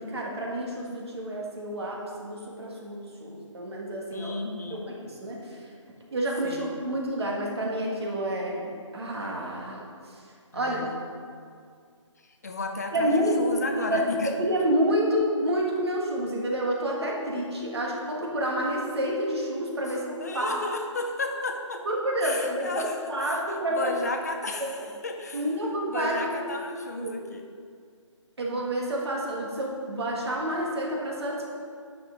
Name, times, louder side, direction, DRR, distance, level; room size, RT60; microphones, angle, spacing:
voice 1, 0.0-4.3 4.7-5.7 6.1-9.9 10.5-10.8 12.9-13.5 13.8-20.6 21.9-23.9 24.7-24.9 25.3-26.6 27.0-27.2 28.4-31.5, right 1 dB, 55° right, -1 dB, 1.8 m, -29 dB
voice 2, 4.1-4.9 6.4-6.8 10.5-11.0 12.2-14.3 17.2-17.3 20.2-21.9 22.2-25.4 25.9-27.5, left 2 dB, 30° left, 4 dB, 0.5 m, -34 dB
9.5 x 5.9 x 3.9 m, 2.2 s
figure-of-eight pair, 165°, 16 cm